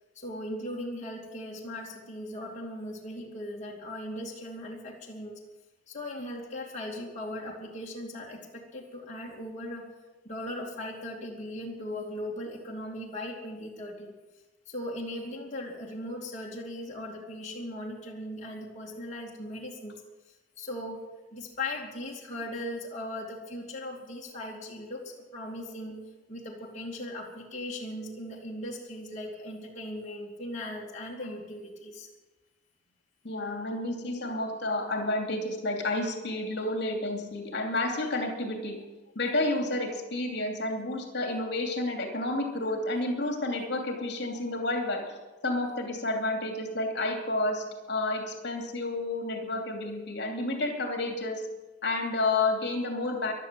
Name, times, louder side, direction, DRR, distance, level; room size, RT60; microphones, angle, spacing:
voice 1, 0.1-5.4 5.9-9.9 10.2-14.2 14.7-20.0 20.6-21.0 21.3-26.0 26.3-32.1, left 1 dB, 35° left, -3 dB, 2.5 m, -38 dB
voice 2, 33.2-38.8 39.1-45.2 45.4-51.5 51.8-53.3, left 2 dB, 60° left, 4 dB, 2.8 m, -30 dB
16.0 x 12.0 x 7.6 m, 1.1 s
head